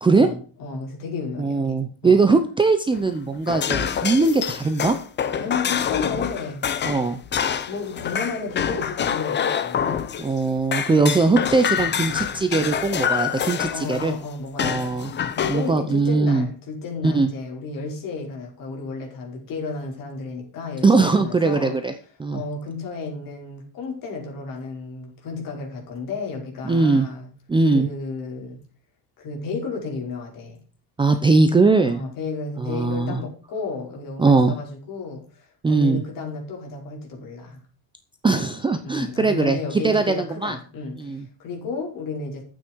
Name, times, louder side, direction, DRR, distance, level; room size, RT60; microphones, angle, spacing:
voice 1, 0.1-2.2 5.4-6.8 7.7-9.9 10.9-11.1 13.7-27.3 27.6-28.6 29.2-30.6 31.8-37.6 38.8-42.4, left 4 dB, 45° left, 0 dB, 5.3 m, -33 dB
voice 2, 1.4-5.0 6.8-7.2 10.2-14.1 14.6-15.1 15.5-16.5 17.0-17.3 20.8-21.9 22.2-22.4 26.7-27.1 27.5-27.9 31.0-32.0 32.6-33.2 34.2-34.5 35.6-36.0 38.2-40.6 41.0-41.2, right 3 dB, 10° right, 7 dB, 0.6 m, -20 dB
sound 1, 2.9-10.4 10.7-14.1 14.6-15.7, left 8 dB, 25° left, 0.7 m, -26 dB
13.0 x 9.0 x 4.6 m, 0.39 s
cardioid pair, 180°, 46 cm